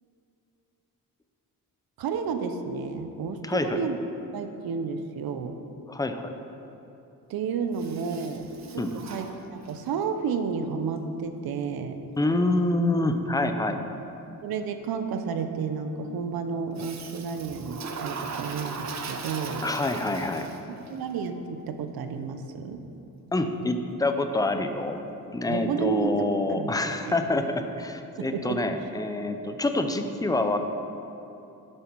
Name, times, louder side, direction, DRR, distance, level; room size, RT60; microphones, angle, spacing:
voice 1, 2.0-4.0 4.3-5.6 7.3-12.0 14.4-19.7 20.7-22.8 25.5-27.2 28.2-28.7, right 5 dB, 85° right, 7 dB, 0.8 m, -31 dB
voice 2, 3.4-3.8 5.9-6.3 8.8-8.9 12.2-13.8 19.6-20.5 23.3-25.0 25.3-30.6, left 2 dB, 10° left, 7 dB, 0.5 m, -26 dB
Toilet flush, 7.7-10.0 16.8-20.9, right 5 dB, 50° right, 0.8 m, -38 dB
11.5 x 7.7 x 4.6 m, 2.9 s
wide cardioid pair, 135°, 35 cm